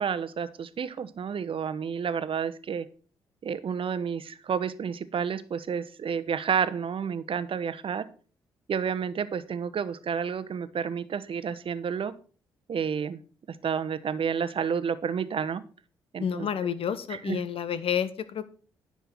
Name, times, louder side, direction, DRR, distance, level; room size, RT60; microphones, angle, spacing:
voice 1, 0.0-2.9 3.4-8.0 8.7-12.1 12.7-13.2 13.5-15.6 16.1-16.5 17.1-17.4, right 7 dB, 50° right, 12 dB, 1.0 m, -30 dB
voice 2, 16.2-18.5, left 8 dB, 55° left, 13 dB, 1.1 m, -29 dB
10.5 x 6.1 x 5.9 m, 0.40 s
hypercardioid pair, 40°, 11 cm